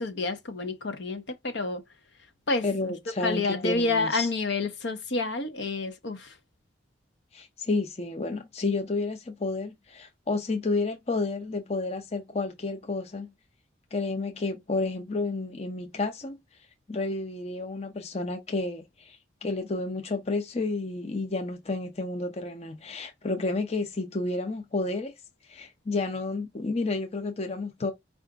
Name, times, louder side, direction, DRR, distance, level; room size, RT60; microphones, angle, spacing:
voice 1, 0.0-1.8 2.5-2.9 3.2-6.3, left 3 dB, 65° left, 0.8 m, -29 dB
voice 2, 2.6-4.3 7.3-13.3 13.9-16.4 16.9-25.1 25.5-27.9, left 3 dB, 35° left, 0.6 m, -31 dB
4.8 x 2.5 x 3.4 m
head